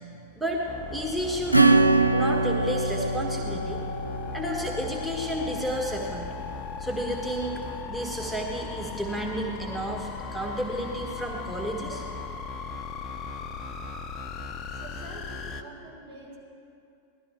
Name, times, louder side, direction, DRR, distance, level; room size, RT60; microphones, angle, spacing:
voice 1, 0.3-0.7 0.9-1.8 2.1-3.8 4.3-6.3 6.8-7.6 7.9-12.0, equal, ahead, -1 dB, 1.5 m, -31 dB
sound 1, 0.7-15.6, left 5 dB, 30° left, 0.8 m, -37 dB
Acoustic guitar / Strum, 1.5-5.8, right 2 dB, 90° right, 0.4 m, -24 dB
voice 2, 14.7-16.4, right 2 dB, 60° right, -3 dB, 3.9 m, -46 dB
18.0 x 12.5 x 4.5 m, 2.5 s
figure-of-eight pair, 90°, 0 cm